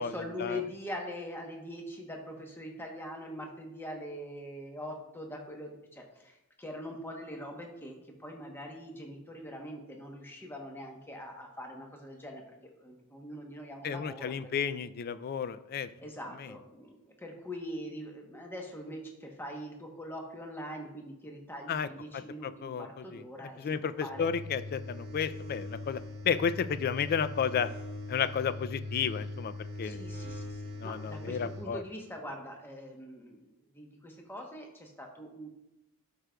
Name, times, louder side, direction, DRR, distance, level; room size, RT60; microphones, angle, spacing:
voice 1, 0.0-14.8 16.0-23.6 24.0-24.3 29.8-35.5, equal, 10° left, 1 dB, 0.9 m, -43 dB
voice 2, 13.8-15.9 16.4-16.5 21.7-27.7 28.1-30.0 30.8-31.8, left 7 dB, 45° left, 14 dB, 0.3 m, -32 dB
sound 1, 24.1-31.7, left 2 dB, 45° right, 1.0 m, -41 dB
12.0 x 5.0 x 2.3 m, 0.89 s
head